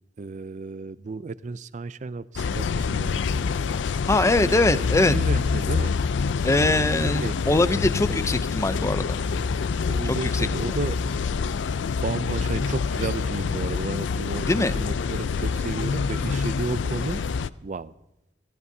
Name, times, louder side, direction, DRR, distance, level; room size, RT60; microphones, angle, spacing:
voice 1, 0.2-3.2 4.7-5.9 7.0-7.4 9.9-11.0 12.0-17.2 17.6-17.9, right 3 dB, 40° right, 15 dB, 0.4 m, -33 dB
sound 1, 2.4-17.5, left 5 dB, 85° left, 0.4 m, -26 dB
voice 2, 4.1-5.1 6.4-9.2 10.0-10.8 14.4-14.7, left 2 dB, 15° left, 13 dB, 0.5 m, -22 dB
26.5 x 15.5 x 2.7 m, 0.94 s
head